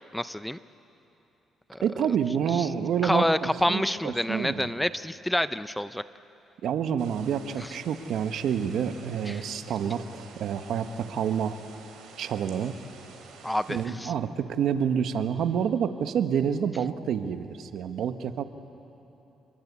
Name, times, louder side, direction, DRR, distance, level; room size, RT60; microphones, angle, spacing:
voice 1, 0.1-0.6 1.7-1.8 2.5-2.7 3.0-6.0 7.6-7.7 9.3-9.5 13.4-14.1, left 1 dB, 5° left, 13 dB, 0.6 m, -28 dB
voice 2, 1.8-4.7 6.6-11.6 12.2-12.8 13.7-18.4, right 8 dB, 75° right, 8 dB, 1.4 m, -28 dB
sound 1, 7.0-13.9, right 5 dB, 90° right, 4.2 m, -49 dB
29.5 x 22.0 x 8.5 m, 3.0 s
cardioid pair, 90°, 0 cm